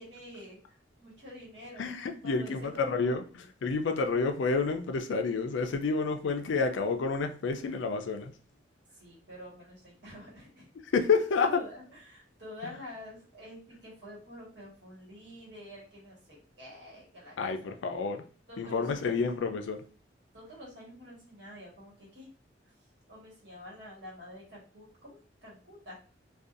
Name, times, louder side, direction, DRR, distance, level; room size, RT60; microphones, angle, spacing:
voice 1, 0.0-1.9 2.2-3.2 8.9-10.7 11.4-17.5 18.5-19.2 20.3-22.3 23.1-25.9, left 1 dB, 60° right, 1.4 m, -48 dB
voice 2, 1.8-8.3 10.9-11.6 17.4-18.2 18.6-19.9, left 4 dB, 80° left, 0.4 m, -29 dB
2.6 x 2.3 x 2.4 m
head